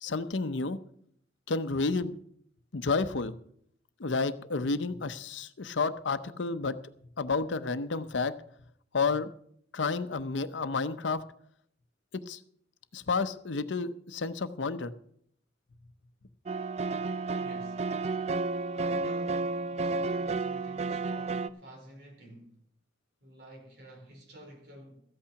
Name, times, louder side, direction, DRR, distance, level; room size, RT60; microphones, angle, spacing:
voice 1, 0.0-0.8 1.5-2.2 2.7-3.3 4.0-6.8 7.2-8.3 8.9-9.3 9.7-11.2 12.3-12.4 12.9-14.9, left 4 dB, 80° left, 0.7 m, -30 dB
sound 1, 16.5-21.5, right 3 dB, 35° right, 0.4 m, -31 dB
voice 2, 17.3-17.9 18.7-22.5 23.2-25.0, right 1 dB, 60° right, 4.2 m, -49 dB
14.0 x 8.7 x 5.8 m
head